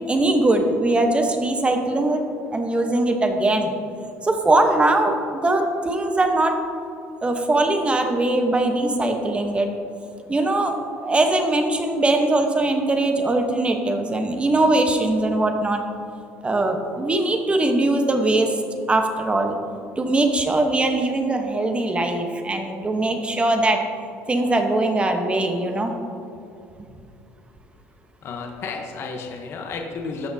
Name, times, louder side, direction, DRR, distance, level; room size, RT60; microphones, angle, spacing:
voice 1, 0.1-2.2 2.5-3.7 4.2-6.6 7.2-9.7 10.3-15.8 16.4-18.6 18.9-19.6 20.0-23.8 24.3-25.9, right 2 dB, 20° right, 5 dB, 1.0 m, -21 dB
voice 2, 28.2-30.3, left 4 dB, 50° left, 2 dB, 0.9 m, -32 dB
13.5 x 5.8 x 2.7 m, 2.6 s
supercardioid pair, 95°, 5 cm